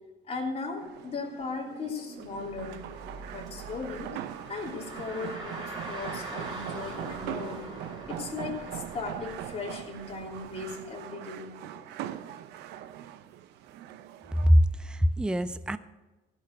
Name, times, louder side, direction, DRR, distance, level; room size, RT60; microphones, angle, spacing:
voice 1, 0.2-2.9 3.3-4.2 4.5-7.7 8.1-11.6, left 4 dB, 40° left, 3.3 m, -37 dB
sound 1, 0.8-14.5, right 11 dB, 90° right, 0.6 m, -41 dB
Car, 2.2-10.8, right 2 dB, 25° right, 4.2 m, -43 dB
voice 2, 14.4-15.8, equal, 5° right, 0.5 m, -23 dB
16.0 x 6.4 x 6.3 m
cardioid pair, 110°, 17 cm